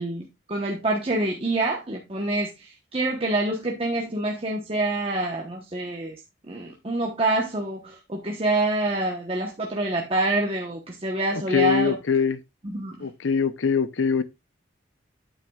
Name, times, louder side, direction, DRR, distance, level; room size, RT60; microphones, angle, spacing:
voice 1, 0.0-6.2 6.5-12.0 12.6-13.1, right 2 dB, 30° right, 1.0 m, -26 dB
voice 2, 11.5-12.4 13.0-14.2, left 6 dB, 80° left, 0.6 m, -23 dB
8.9 x 7.7 x 2.3 m
head